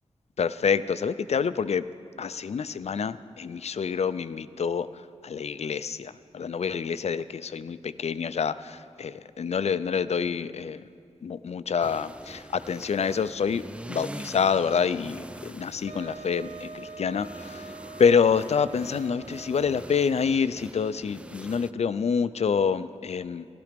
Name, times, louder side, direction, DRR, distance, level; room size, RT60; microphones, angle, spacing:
voice 1, 0.4-1.9 2.2-10.9 11.2-17.7 18.0-23.5, left 6 dB, 65° left, 14 dB, 0.4 m, -27 dB
sound 1, 11.8-21.7, right 1 dB, 10° right, 0.3 m, -44 dB
Wind instrument woodwind instrument, 15.9-20.2, right 4 dB, 90° right, 0.5 m, -44 dB
15.0 x 12.0 x 5.1 m, 2.3 s
wide cardioid pair, 70°, 12 cm